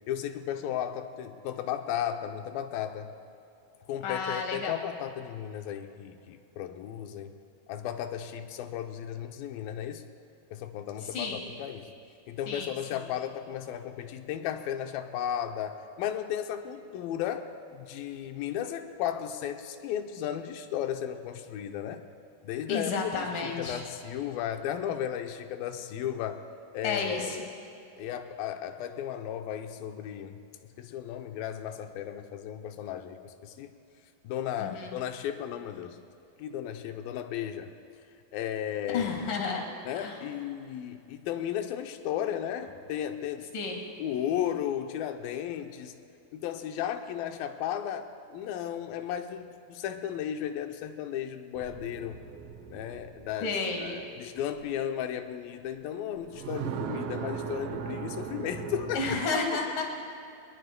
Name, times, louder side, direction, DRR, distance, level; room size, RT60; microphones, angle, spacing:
voice 1, 0.0-3.1 3.9-7.4 7.7-10.0 10.5-11.9 12.3-22.0 22.4-26.5 26.7-27.5 28.0-30.4 30.8-33.7 34.2-36.0 36.4-37.7 38.3-39.1 39.9-43.5 44.0-46.0 46.3-52.2 52.7-53.5 53.8-59.2, left 10 dB, 80° left, 7 dB, 2.5 m, -35 dB
voice 2, 4.0-4.8 11.0-11.4 12.5-13.0 22.7-23.8 26.8-27.4 34.6-34.9 38.9-39.7 39.9-40.2 43.5-43.8 53.4-54.0 58.9-59.8, left 4 dB, 65° left, 1 dB, 3.4 m, -32 dB
sound 1, 51.5-54.7 56.2-59.2, right 7 dB, 75° right, 2.6 m, -38 dB
24.5 x 21.0 x 2.2 m, 2.6 s
omnidirectional pair, 4.3 m